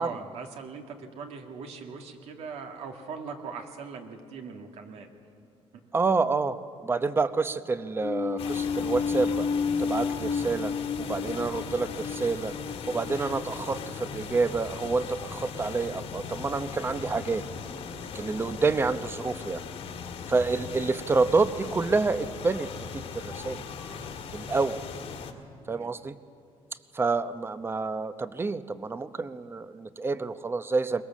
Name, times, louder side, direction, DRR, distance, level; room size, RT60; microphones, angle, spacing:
voice 1, 0.0-5.1 25.7-25.9, right 5 dB, 80° right, 4 dB, 2.3 m, -40 dB
voice 2, 5.9-9.5 9.8-12.5 12.9-17.4 18.0-19.6 20.3-23.6 24.3-24.8 25.7-26.2 26.9-31.0, right 4 dB, 20° right, 13 dB, 0.8 m, -28 dB
sound 1, 8.0-14.4, left 5 dB, 45° left, 0.8 m, -31 dB
sound 2, 8.4-25.3, left 6 dB, 65° left, 1.9 m, -39 dB
22.5 x 20.5 x 7.4 m, 2.4 s
cardioid pair, 125°, 11 cm